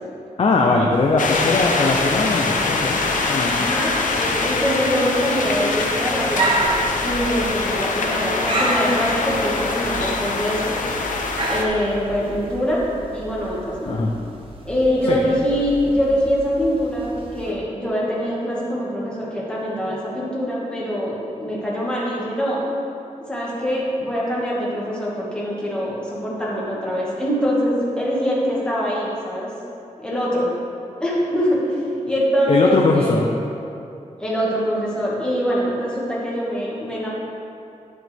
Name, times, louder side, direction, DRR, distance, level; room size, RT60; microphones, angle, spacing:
voice 1, 0.4-3.0 3.3-3.7 13.9-14.1 15.1-15.2 32.5-33.3, left 3 dB, 45° left, 0 dB, 0.6 m, -20 dB
sound 1, 0.9-17.5, right 2 dB, 45° right, 1.0 m, -31 dB
sound 2, 1.2-11.6, left 3 dB, 80° left, 0.8 m, -23 dB
voice 2, 3.6-10.7 11.5-12.8 13.1-14.0 14.7-22.6 23.3-29.5 30.0-30.5 31.0-33.2 34.2-37.1, equal, 5° left, -7 dB, 1.9 m, -23 dB
10.5 x 6.5 x 3.5 m, 2.6 s
wide cardioid pair, 155°, 13 cm